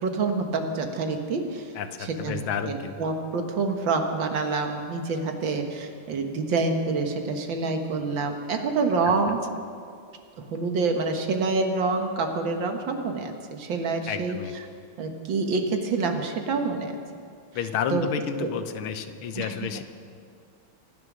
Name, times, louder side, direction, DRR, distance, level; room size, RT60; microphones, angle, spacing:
voice 1, 0.0-1.7 2.0-9.4 10.5-14.4 15.0-17.0 17.9-18.1 18.4-18.5 19.4-19.7, right 4 dB, 65° right, 4 dB, 2.1 m, -27 dB
voice 2, 1.8-2.9 14.1-14.5 17.5-19.8, left 8 dB, 80° left, 9 dB, 1.7 m, -31 dB
25.0 x 9.4 x 6.2 m, 2.3 s
omnidirectional pair, 2.3 m